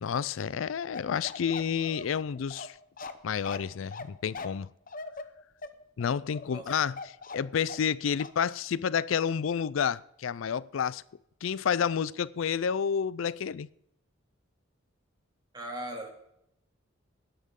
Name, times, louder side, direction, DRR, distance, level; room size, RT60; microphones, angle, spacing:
voice 1, 0.0-2.8 3.2-4.7 6.0-11.0 11.4-13.7, left 7 dB, 80° left, 0.4 m, -30 dB
Bark, 0.9-7.9 8.2-8.4, left 3 dB, 45° left, 0.9 m, -41 dB
voice 2, 15.5-16.1, right 1 dB, 20° right, 2.6 m, -38 dB
19.0 x 10.5 x 3.7 m
head